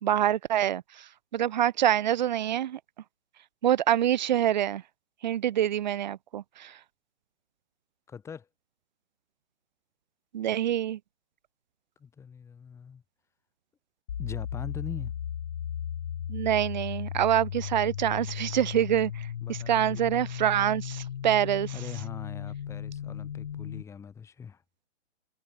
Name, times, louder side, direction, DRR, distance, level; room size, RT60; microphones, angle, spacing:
voice 1, 0.0-2.8 3.6-4.8 5.2-6.8 10.3-11.0 16.3-21.7, right 11 dB, 35° right, 1.7 m, -26 dB
voice 2, 8.1-8.5 12.0-13.0 14.2-15.2 19.4-20.1 21.7-24.6, left 6 dB, 5° left, 5.6 m, -42 dB
sound 1, 14.1-23.8, left 9 dB, 45° left, 0.6 m, -36 dB
hypercardioid pair, 165°, 38 cm